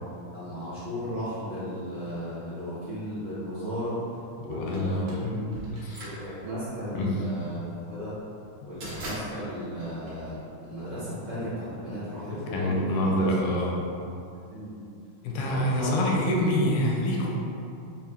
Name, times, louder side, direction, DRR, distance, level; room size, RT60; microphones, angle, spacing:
voice 1, 0.3-4.0 4.4-5.2 6.0-8.2 8.6-13.2 14.5-14.7 15.4-15.9, equal, 50° right, -11 dB, 1.4 m, -35 dB
voice 2, 4.5-5.4 5.7-6.0 7.0-7.1 12.5-13.8 15.2-17.3, equal, 80° left, -2 dB, 2.0 m, -26 dB
sound 1, 4.7-10.9, right 1 dB, 80° right, 1.0 m, -42 dB
5.6 x 2.4 x 3.5 m, 2.6 s
omnidirectional pair, 3.6 m